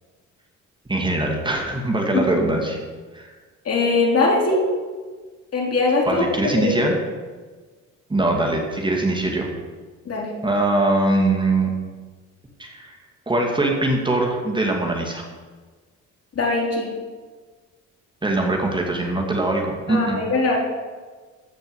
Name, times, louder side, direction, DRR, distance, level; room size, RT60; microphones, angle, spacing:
voice 1, 0.9-2.8 3.1-3.3 6.1-7.0 8.1-9.5 10.4-11.7 12.6-13.0 13.3-15.2 18.2-20.2, right 2 dB, 15° right, 0 dB, 2.3 m, -22 dB
voice 2, 3.7-4.6 5.5-6.8 10.1-10.3 16.3-16.9 19.9-20.6, left 3 dB, 50° left, -1 dB, 3.4 m, -21 dB
14.5 x 5.4 x 8.1 m, 1.4 s
cardioid pair, 90°, 30 cm